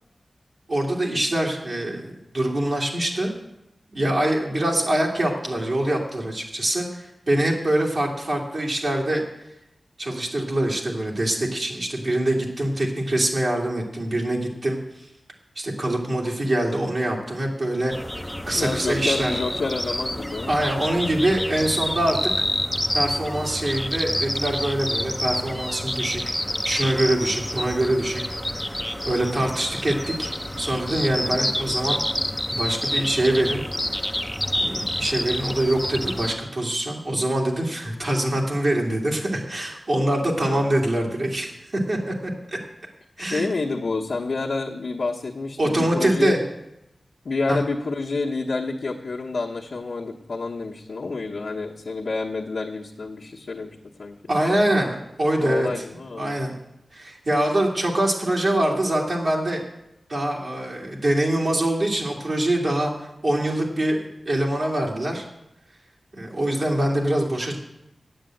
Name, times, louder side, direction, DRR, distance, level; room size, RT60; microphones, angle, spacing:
voice 1, 0.7-3.3 3.9-9.2 10.0-14.8 15.6-17.9 18.5-19.3 20.5-22.2 22.9-26.2 26.6-28.2 28.6-28.8 29.0-30.3 30.6-32.0 32.5-33.6 34.5-42.6 43.2-43.5 45.6-46.4 47.5-47.6 54.3-55.7 56.1-56.6 56.9-59.6 60.1-62.9 63.2-65.2 66.1-67.6, right 1 dB, 60° right, -2 dB, 2.4 m, -24 dB
sound 1, 17.9-36.4, left 1 dB, 5° left, 0.6 m, -28 dB
voice 2, 18.5-20.5 40.4-40.8 43.2-46.4 47.2-54.2 55.4-56.4, left 3 dB, 75° left, -5 dB, 1.0 m, -28 dB
8.8 x 7.6 x 8.9 m, 0.84 s
wide cardioid pair, 75°, 0 cm